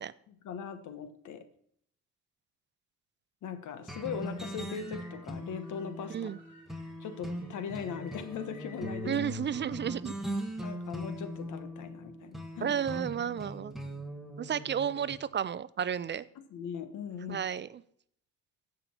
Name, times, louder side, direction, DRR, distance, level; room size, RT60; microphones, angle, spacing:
voice 1, 0.3-1.5 3.4-6.2 7.0-9.2 10.6-12.7 16.5-17.4, left 7 dB, 75° left, 10 dB, 1.3 m, -39 dB
sound 1, 3.9-15.2, equal, ahead, 1.7 m, -40 dB
sound 2, 4.0-9.2, left 2 dB, 25° left, 4.9 m, -58 dB
voice 2, 9.1-10.1 12.6-13.7 14.4-16.2 17.3-17.8, right 8 dB, 40° right, 18 dB, 0.4 m, -32 dB
15.5 x 5.6 x 4.4 m, 0.67 s
cardioid pair, 90°, 30 cm